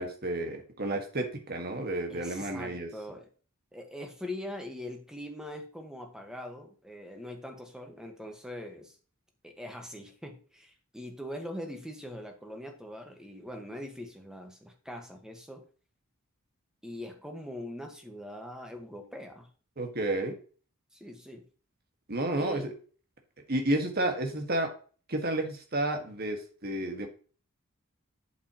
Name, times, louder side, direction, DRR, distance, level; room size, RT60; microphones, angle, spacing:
voice 1, 0.0-2.9 19.8-20.4 22.1-22.7 23.5-24.7 25.1-27.1, right 1 dB, 45° right, 4 dB, 1.7 m, -31 dB
voice 2, 2.1-3.3 3.7-9.0 9.4-15.7 16.8-19.5 20.9-21.4 22.3-22.7 24.2-24.4, left 1 dB, 5° right, 3 dB, 1.4 m, -42 dB
8.2 x 7.5 x 3.0 m, 0.39 s
head